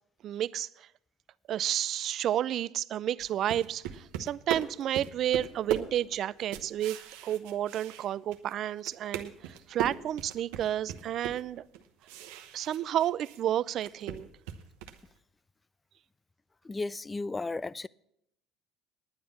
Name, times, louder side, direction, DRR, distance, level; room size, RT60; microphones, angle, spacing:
voice 1, 0.2-0.9 1.5-7.0 7.2-11.6 12.5-14.3, right 11 dB, 55° right, 0.4 m, -31 dB
sound 1, 3.2-8.5 8.8-13.4 13.7-15.1, right 10 dB, 80° right, 0.9 m, -38 dB
voice 2, 16.7-17.9, left 3 dB, 20° left, 0.4 m, -34 dB
10.0 x 9.5 x 6.9 m
supercardioid pair, 80°, 0 cm